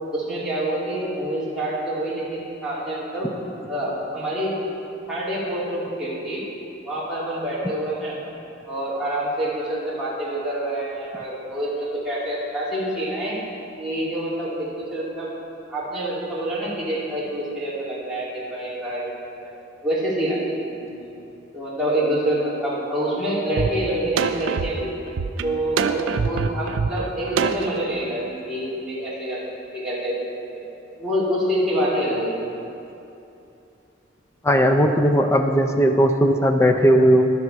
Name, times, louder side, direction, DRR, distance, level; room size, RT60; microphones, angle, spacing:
voice 1, 0.1-3.3 3.7-4.6 5.1-6.4 6.8-8.2 8.6-13.4 13.8-15.3 15.7-19.1 19.8-21.1 21.5-24.9 25.4-29.4 29.7-30.3 30.5-30.6 31.0-32.4, right 1 dB, 5° right, -10 dB, 2.2 m, -26 dB
sound 1, 23.6-23.7 24.2-27.8, right 5 dB, 70° right, 0.4 m, -24 dB
voice 2, 34.4-37.3, equal, 15° left, 5 dB, 0.5 m, -17 dB
12.5 x 6.2 x 4.7 m, 2.8 s
head